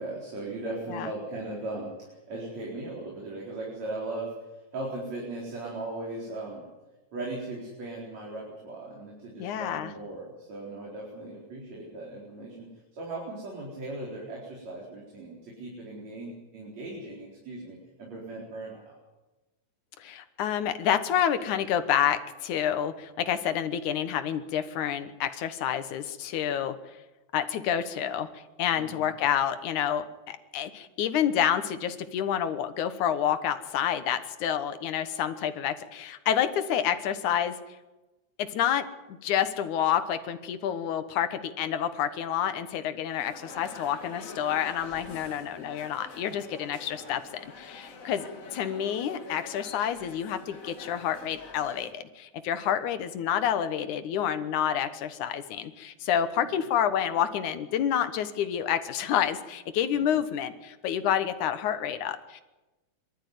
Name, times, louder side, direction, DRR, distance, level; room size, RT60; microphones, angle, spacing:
voice 1, 0.0-4.5 4.7-6.7 7.1-19.0 28.8-29.1 56.4-56.6 59.9-60.2, right 2 dB, 65° right, -4 dB, 5.5 m, -38 dB
voice 2, 9.4-9.9 20.0-26.8 27.3-37.6 38.4-62.4, left 9 dB, 85° left, 10 dB, 2.7 m, -28 dB
sound 1, 43.2-51.9, left 4 dB, 30° left, 1.8 m, -45 dB
24.0 x 13.0 x 9.5 m, 1.1 s
omnidirectional pair, 3.4 m